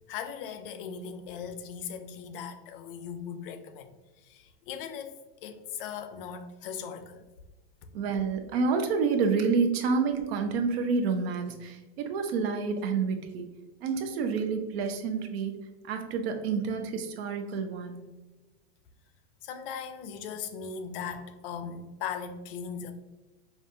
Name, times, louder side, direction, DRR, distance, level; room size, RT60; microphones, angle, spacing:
voice 1, 0.1-3.9 4.2-5.1 5.4-7.2 19.4-22.9, left 7 dB, 60° left, 9 dB, 0.5 m, -38 dB
voice 2, 7.9-13.5 13.8-15.5 15.9-18.1, right 5 dB, 70° right, 6 dB, 0.7 m, -28 dB
5.2 x 2.4 x 2.6 m, 1.2 s
supercardioid pair, 155°, 32 cm